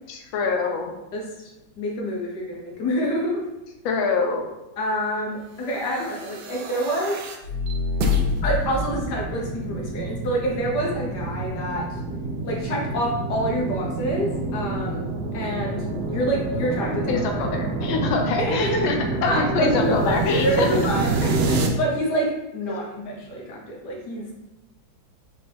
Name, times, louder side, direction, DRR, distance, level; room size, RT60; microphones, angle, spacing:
voice 1, 0.1-0.9 3.8-4.5 17.1-19.0 19.2-20.7, left 4 dB, 90° left, 3 dB, 1.4 m, -24 dB
voice 2, 1.1-1.5 1.8-3.4 4.8-7.2 8.4-11.8 12.4-15.0 15.3-17.4 18.4-18.9 19.2-24.3, right 1 dB, 65° left, -2 dB, 1.2 m, -27 dB
sound 1, 5.9-21.7, right 1 dB, 75° right, 1.0 m, -27 dB
4.6 x 2.6 x 3.3 m, 0.97 s
omnidirectional pair, 2.1 m